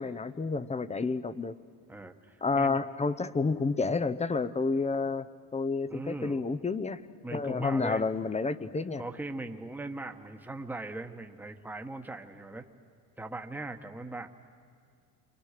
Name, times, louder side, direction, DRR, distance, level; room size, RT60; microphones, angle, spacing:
voice 1, 0.0-1.5 2.4-5.3 5.5-7.0 7.3-9.0, left 4 dB, 15° left, 15 dB, 0.8 m, -30 dB
voice 2, 1.9-2.8 5.9-6.4 7.2-8.1 9.0-12.7 13.2-14.3, right 2 dB, 5° right, 4 dB, 1.3 m, -40 dB
29.0 x 25.0 x 6.7 m, 2.2 s
supercardioid pair, 100°, 49 cm